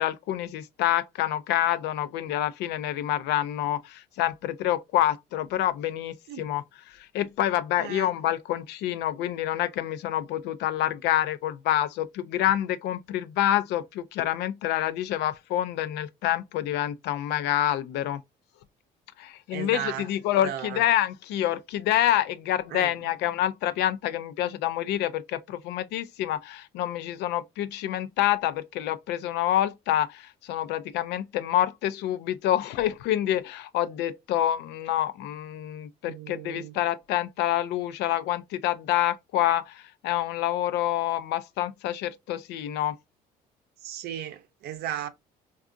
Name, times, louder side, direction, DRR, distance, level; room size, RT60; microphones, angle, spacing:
voice 1, 0.0-6.6 6.9-18.2 19.2-43.0, left 12 dB, 85° left, 0.4 m, -27 dB
voice 2, 19.5-20.1 20.4-20.8 22.7-23.1 36.1-36.7 43.8-45.1, right 10 dB, 70° right, 0.6 m, -35 dB
3.5 x 2.3 x 2.4 m
cardioid pair, 110°, 17 cm